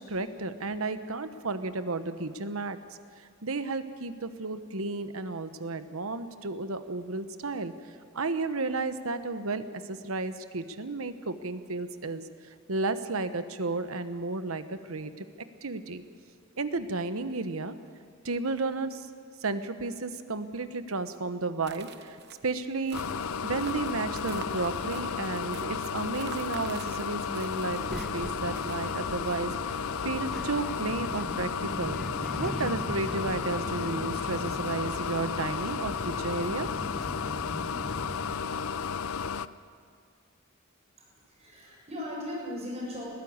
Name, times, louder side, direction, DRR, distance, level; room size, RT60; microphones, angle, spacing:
voice 1, 0.0-2.8 3.2-7.7 8.1-12.2 12.7-15.3 15.6-16.0 16.6-17.7 18.2-19.1 19.4-22.2 22.4-23.0 23.4-29.5 30.0-32.0 32.3-36.7, right 3 dB, 80° right, 10 dB, 1.1 m, -33 dB
sound 1, 21.6-29.0, right 6 dB, 50° right, 1.0 m, -48 dB
sound 2, 22.9-39.5, left 6 dB, 75° left, 0.5 m, -33 dB
Child speech kid speaking, 27.7-38.4, equal, ahead, 0.5 m, -41 dB
voice 2, 41.0-43.1, left 1 dB, 30° right, -3 dB, 7.1 m, -38 dB
21.0 x 14.5 x 8.7 m, 2.1 s
head